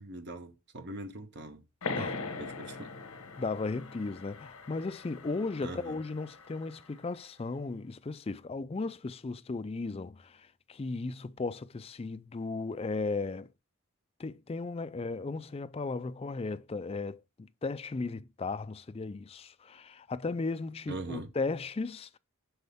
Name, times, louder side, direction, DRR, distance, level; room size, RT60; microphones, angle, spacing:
voice 1, 0.0-1.6 1.9-2.9 5.6-6.0 20.9-21.3, right 2 dB, 50° right, 1.0 m, -42 dB
sound 1, 1.8-7.0, left 3 dB, 80° left, 1.1 m, -41 dB
voice 2, 3.4-13.5 14.2-22.2, left 3 dB, 25° left, 0.3 m, -36 dB
7.8 x 5.5 x 3.5 m
head